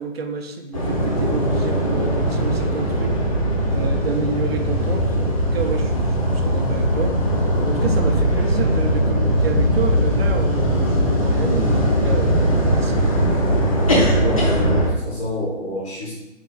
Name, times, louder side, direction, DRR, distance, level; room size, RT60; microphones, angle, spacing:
voice 1, 0.0-3.2 3.7-7.2 7.6-13.4, right 4 dB, 55° right, 6 dB, 0.6 m, -29 dB
sound 1, 0.7-14.9, equal, 30° left, 0.5 m, -20 dB
voice 2, 14.2-16.1, left 1 dB, 60° left, -7 dB, 1.2 m, -27 dB
4.5 x 3.7 x 2.3 m, 1.0 s
figure-of-eight pair, 145°, 38 cm